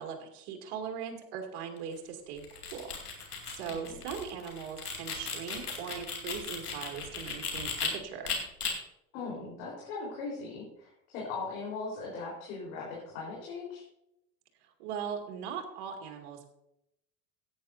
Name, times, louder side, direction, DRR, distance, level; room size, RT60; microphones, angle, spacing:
voice 1, 0.0-8.4 14.8-16.5, right 7 dB, 60° right, 3 dB, 2.4 m, -40 dB
sound 1, 2.4-7.9 8.2-8.7, left 5 dB, 90° left, 2.4 m, -36 dB
voice 2, 9.1-13.8, left 4 dB, 65° left, -4 dB, 4.0 m, -39 dB
16.5 x 9.1 x 2.6 m, 0.81 s
hypercardioid pair, 75°, 44 cm